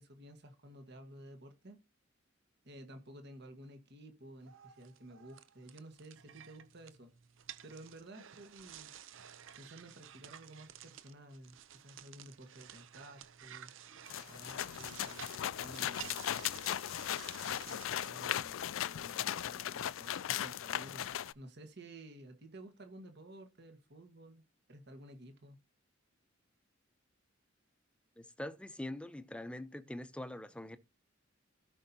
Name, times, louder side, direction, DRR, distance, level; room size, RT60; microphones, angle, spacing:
voice 1, 0.0-1.8 2.6-7.1 7.6-8.9 9.6-13.7 14.2-16.5 17.6-18.6 18.8-21.1 21.3-24.4 24.7-25.6, right 1 dB, 60° right, 1.5 m, -53 dB
sound 1, 4.4-18.1, right 10 dB, 75° right, 0.7 m, -53 dB
sound 2, 14.1-21.3, left 11 dB, 80° left, 0.4 m, -38 dB
voice 2, 28.2-30.8, left 1 dB, 5° left, 0.6 m, -43 dB
16.0 x 5.4 x 2.8 m
head